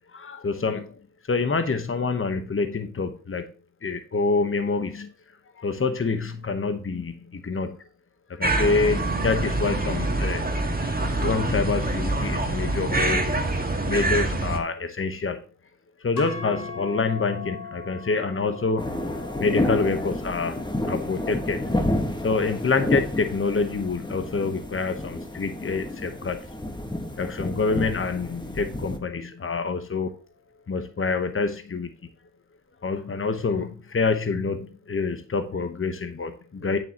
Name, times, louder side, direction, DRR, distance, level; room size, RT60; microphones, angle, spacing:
voice 1, 0.1-1.0 1.3-3.5 3.8-5.1 5.6-7.8 8.3-10.4 11.2-13.3 13.9-15.4 16.0-18.9 19.4-20.6 20.9-21.6 22.2-26.4 27.2-30.1 30.7-31.9 32.8-36.8, left 4 dB, 40° left, 8 dB, 1.1 m, -26 dB
sound 1, 8.4-14.6, right 2 dB, 30° right, 1.7 m, -25 dB
sound 2, 16.2-24.4, left 4 dB, 85° left, 2.6 m, -41 dB
sound 3, 18.8-29.0, left 1 dB, 15° left, 1.5 m, -30 dB
8.9 x 7.8 x 3.0 m, 0.38 s
wide cardioid pair, 85°, 32 cm